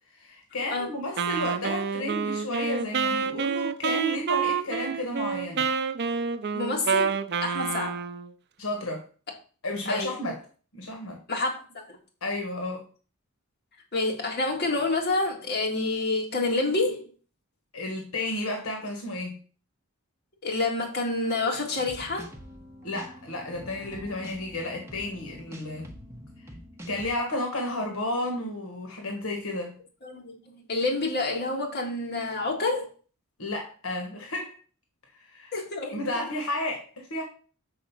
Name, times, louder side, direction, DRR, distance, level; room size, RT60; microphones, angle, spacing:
voice 1, 0.1-5.7 8.6-9.1 9.6-10.4 10.7-11.2 12.2-12.9 17.7-19.4 22.8-25.9 26.4-26.5 26.9-29.8 33.4-34.6 35.1-35.5 35.9-37.2, left 1 dB, 80° left, 1.3 m, -32 dB
Wind instrument woodwind instrument, 1.2-8.3, right 6 dB, 50° right, 0.5 m, -28 dB
voice 2, 6.5-8.0 9.9-10.2 11.3-12.0 13.9-17.1 20.4-22.3 30.0-32.9 35.5-36.0, left 2 dB, 50° left, 1.9 m, -28 dB
sound 1, 21.8-27.1, equal, 10° right, 1.0 m, -45 dB
6.3 x 3.9 x 5.8 m
head